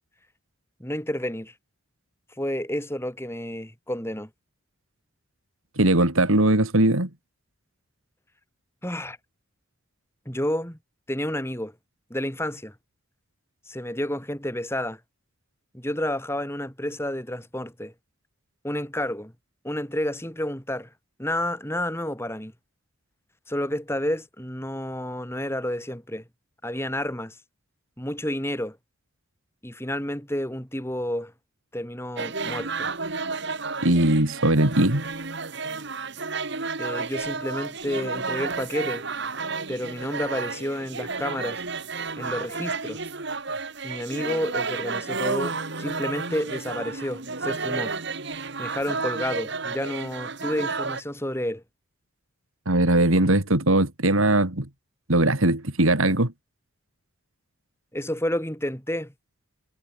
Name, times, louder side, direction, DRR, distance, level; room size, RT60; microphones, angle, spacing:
voice 1, 0.8-1.5 2.4-4.3 8.8-9.2 10.3-10.8 11.1-11.7 12.1-12.7 13.7-15.0 15.7-17.9 18.6-19.3 19.6-20.9 21.2-22.5 23.5-26.2 26.6-27.4 28.0-28.8 29.6-31.3 31.7-32.9 36.8-39.1 39.7-41.6 42.2-43.0 43.8-47.9 48.6-51.6 57.9-59.1, left 1 dB, 10° left, 6.0 m, -30 dB
voice 2, 5.8-7.1 33.8-35.0 52.7-54.7 55.1-56.3, right 1 dB, 80° right, 3.2 m, -20 dB
sound 1, 32.2-51.0, right 4 dB, 55° right, 2.3 m, -31 dB
head